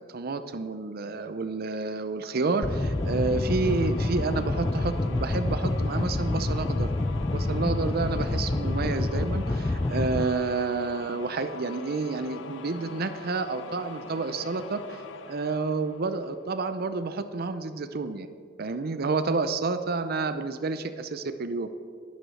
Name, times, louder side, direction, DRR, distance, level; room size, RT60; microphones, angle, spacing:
voice 1, 0.0-6.9 7.3-15.0 15.3-18.3 18.6-21.7, right 3 dB, 55° right, 10 dB, 0.6 m, -29 dB
sound 1, 2.3-16.9, left 4 dB, 75° left, 0.7 m, -43 dB
sound 2, 2.6-10.3, left 2 dB, 20° left, 0.3 m, -27 dB
11.0 x 9.5 x 6.4 m, 2.1 s
head